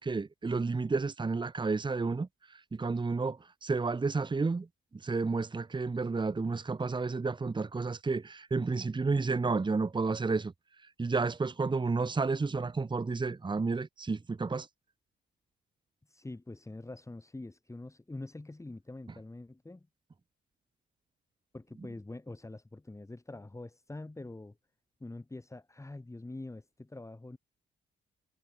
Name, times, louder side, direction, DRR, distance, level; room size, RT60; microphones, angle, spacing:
voice 1, 0.0-4.7 5.0-10.5 11.0-14.7, right 4 dB, 25° right, 1.7 m, -31 dB
voice 2, 16.1-19.9 21.5-24.6 25.0-27.4, left 2 dB, 15° left, 6.9 m, -45 dB
cardioid pair, 90°, 20 cm